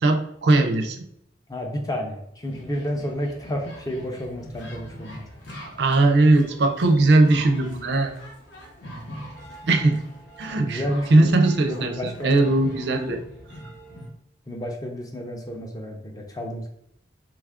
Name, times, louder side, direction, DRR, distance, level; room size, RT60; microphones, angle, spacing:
voice 1, 0.0-1.0 5.8-8.1 9.7-10.1 10.4-10.8 11.1-12.0 12.2-13.2, right 2 dB, 65° right, 6 dB, 0.4 m, -19 dB
voice 2, 1.5-5.3 8.8-9.1 10.6-11.4 11.6-12.4 14.5-16.7, equal, 20° left, 2 dB, 0.4 m, -31 dB
sound 1, 2.4-14.1, equal, 85° left, 0.8 m, -42 dB
3.0 x 2.3 x 3.5 m, 0.74 s
head